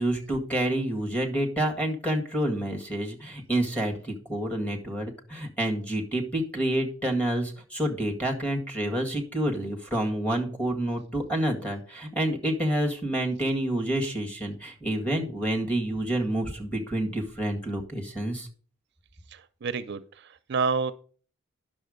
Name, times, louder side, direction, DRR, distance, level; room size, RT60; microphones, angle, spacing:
voice 1, 0.0-18.5, right 1 dB, 5° left, 1 dB, 1.9 m, -28 dB
voice 2, 19.3-20.9, right 5 dB, 55° right, 12 dB, 0.5 m, -29 dB
10.5 x 6.4 x 5.1 m, 0.43 s
head